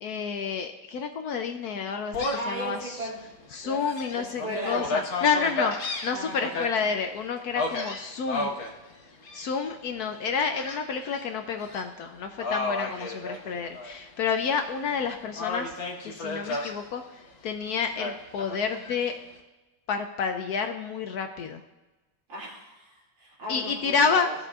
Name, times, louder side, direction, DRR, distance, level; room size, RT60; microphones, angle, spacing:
voice 1, 0.0-3.0 3.5-5.7 6.0-8.5 9.3-19.1 19.9-21.6 23.5-24.3, left 5 dB, 70° left, 6 dB, 1.0 m, -29 dB
Gull seagull, 2.1-2.6 3.1-3.2 3.7-6.7 7.6-8.7 9.2-9.7 10.5-11.2 11.6-11.8 12.4-13.9 14.3-15.0 15.4-16.7 18.0-19.0, left 2 dB, 85° left, 2.1 m, -32 dB
voice 2, 2.3-3.2 3.6-3.8 4.1-5.0 6.1-6.9 22.3-24.4, right 1 dB, 80° right, -5 dB, 3.6 m, -37 dB
17.5 x 6.7 x 2.4 m, 1.1 s
omnidirectional pair, 2.0 m